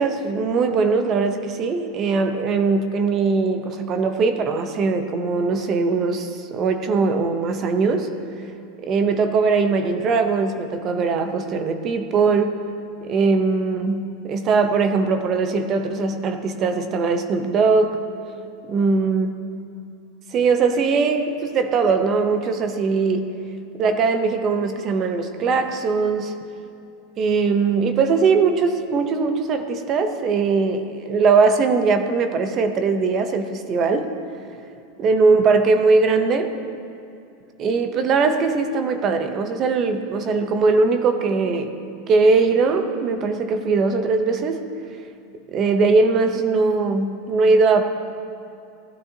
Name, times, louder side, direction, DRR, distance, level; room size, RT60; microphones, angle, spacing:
voice 1, 0.0-8.4 8.8-12.5 13.0-18.0 18.7-19.3 20.3-23.3 23.8-26.3 27.2-34.1 35.0-36.5 37.6-41.7 42.1-44.6 45.5-47.8, right 4 dB, 30° right, 8 dB, 0.7 m, -20 dB
16.0 x 12.0 x 2.8 m, 2.6 s
supercardioid pair, 165°, 0 cm